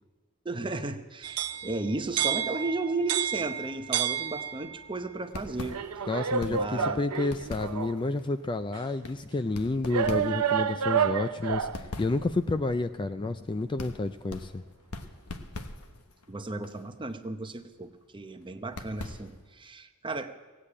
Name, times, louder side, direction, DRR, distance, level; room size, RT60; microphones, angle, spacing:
voice 1, 0.4-5.8 6.5-7.0 16.3-20.3, right 2 dB, 20° right, 8 dB, 0.8 m, -34 dB
sound 1, 1.2-4.9 5.7-8.0 8.7-8.8 9.9-11.9, right 8 dB, 80° right, 0.6 m, -30 dB
sound 2, 5.2-19.7, left 2 dB, 90° left, 1.2 m, -44 dB
voice 2, 6.1-14.6, left 2 dB, 20° left, 10 dB, 0.4 m, -30 dB
17.0 x 8.3 x 8.7 m, 1.3 s
head